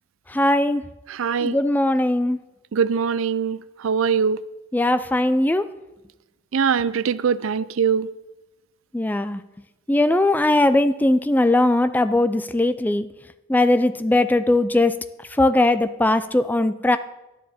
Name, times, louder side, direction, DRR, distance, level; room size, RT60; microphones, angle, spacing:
voice 1, 0.3-0.8 1.4-2.4 4.7-5.7 8.9-9.4 9.9-13.1 13.5-15.0 15.4-17.0, left 1 dB, 10° left, 12 dB, 0.3 m, -19 dB
voice 2, 1.1-1.6 2.7-4.4 6.5-8.1, right 6 dB, 75° right, 17 dB, 0.4 m, -22 dB
12.5 x 10.5 x 4.2 m, 0.99 s
head